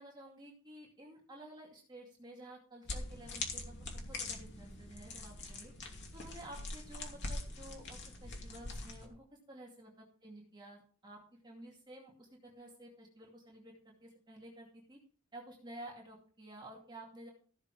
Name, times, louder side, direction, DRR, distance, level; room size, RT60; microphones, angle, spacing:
voice 1, 0.0-5.7 6.1-11.2 11.4-15.0 15.3-17.3, right 1 dB, 20° right, -2 dB, 2.4 m, -52 dB
sound 1, 2.9-9.1, left 2 dB, 60° left, 2.6 m, -43 dB
15.0 x 6.8 x 4.8 m, 0.43 s
head